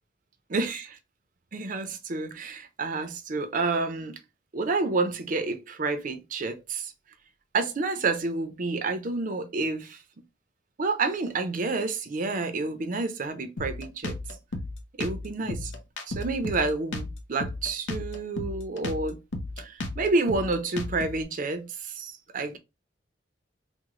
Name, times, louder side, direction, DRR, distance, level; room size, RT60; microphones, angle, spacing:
voice 1, 0.5-0.9 1.5-4.2 4.5-6.9 7.5-10.0 10.8-14.2 15.0-15.7 16.1-19.2 19.6-22.6, right 3 dB, 45° right, 0.5 m, -29 dB
Drum kit, 13.6-21.2, left 2 dB, 80° left, 0.6 m, -34 dB
3.7 x 2.1 x 2.9 m
head